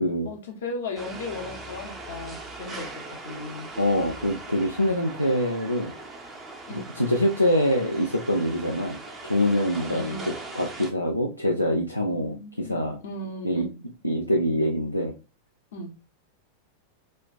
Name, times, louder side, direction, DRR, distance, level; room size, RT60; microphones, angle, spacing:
voice 1, 0.2-3.7 6.7-6.9 9.9-10.2 12.1-13.8 15.7-15.9, left 2 dB, 60° left, 3 dB, 0.8 m, -36 dB
sound 1, 1.0-10.9, right 2 dB, 20° right, 0.7 m, -40 dB
voice 2, 3.8-5.9 6.7-9.0 9.2-10.2 10.6-13.0 13.4-13.7 14.0-15.1, equal, 90° left, 1 dB, 0.4 m, -24 dB
4.2 x 2.4 x 2.2 m, 0.30 s
figure-of-eight pair, 90°, 0 cm